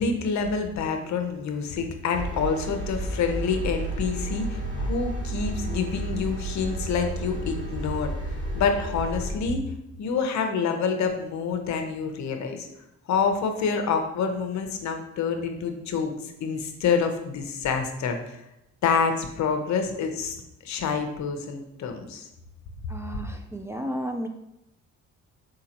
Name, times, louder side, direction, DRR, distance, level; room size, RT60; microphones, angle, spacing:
voice 1, 0.0-9.6 10.0-12.7 13.1-18.4 18.8-20.4 20.6-22.3, left 5 dB, 65° left, 5 dB, 0.7 m, -27 dB
sound 1, 2.1-9.3, right 1 dB, 40° right, 1.5 m, -32 dB
voice 2, 22.9-24.3, equal, 10° right, 4 dB, 0.3 m, -33 dB
4.5 x 3.8 x 2.9 m, 0.87 s
cardioid pair, 90°, 30 cm